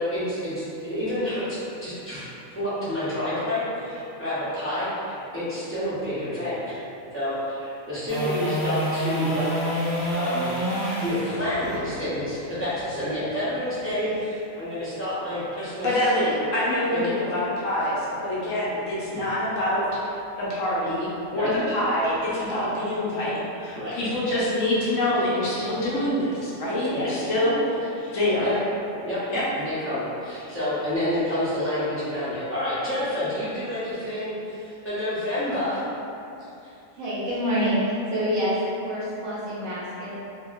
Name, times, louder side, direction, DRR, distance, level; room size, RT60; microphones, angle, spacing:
voice 1, 0.0-1.5 1.8-6.8 7.1-9.6 10.1-10.5 11.0-15.9 16.9-17.1 19.1-19.3 21.3-21.5 23.7-24.1 26.9-27.2 28.0-28.1 28.4-28.5 29.0-29.2 29.6-35.8 36.6-36.7, left 1 dB, 10° left, -14 dB, 0.7 m, -29 dB
sound 1, 8.1-14.2 20.8-20.9, right 1 dB, 25° right, 0.9 m, -29 dB
voice 2, 15.8-19.8 20.4-23.3 23.6-27.6 28.1-28.5 29.3-29.4, left 1 dB, 70° left, -8 dB, 1.0 m, -25 dB
voice 3, 36.9-40.2, equal, 65° right, -9 dB, 1.0 m, -27 dB
2.9 x 2.7 x 2.3 m, 2.7 s
omnidirectional pair, 1.4 m